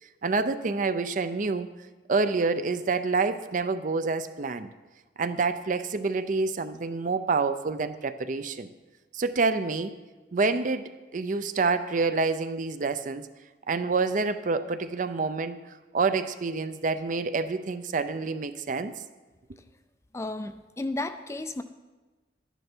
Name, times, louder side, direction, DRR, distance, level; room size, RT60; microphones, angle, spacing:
voice 1, 0.2-1.7 2.1-4.7 5.2-8.7 9.1-9.9 10.3-13.3 13.7-15.6 15.9-18.9, right 4 dB, 45° right, 12 dB, 0.5 m, -27 dB
voice 2, 20.1-21.6, left 2 dB, 15° left, 10 dB, 0.4 m, -33 dB
12.0 x 10.0 x 4.4 m, 1.2 s
head